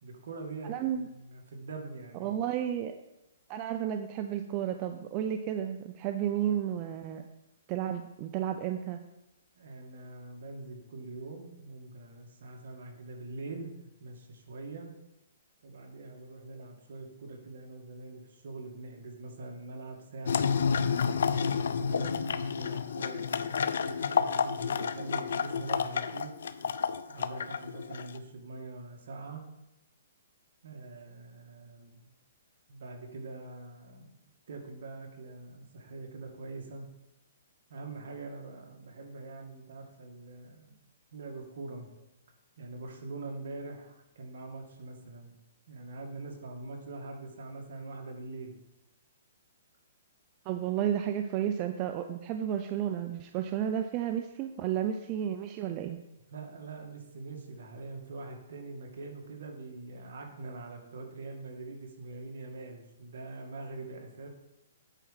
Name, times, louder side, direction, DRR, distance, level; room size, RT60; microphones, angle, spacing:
voice 1, 0.0-2.4 9.6-14.9 15.6-26.4 27.1-29.4 30.6-32.1 32.7-34.2 34.5-36.9 37.7-40.8 41.1-41.9 42.6-45.4 45.7-48.6 56.3-64.3, right 3 dB, 65° right, 2 dB, 1.9 m, -43 dB
voice 2, 0.6-1.1 2.2-2.9 3.5-7.2 7.7-9.0 50.5-56.0, right 10 dB, 30° right, 7 dB, 0.5 m, -32 dB
sound 1, 20.3-28.2, left 6 dB, 75° left, 0.5 m, -30 dB
9.0 x 4.8 x 5.6 m, 0.90 s
hypercardioid pair, 150°, 0 cm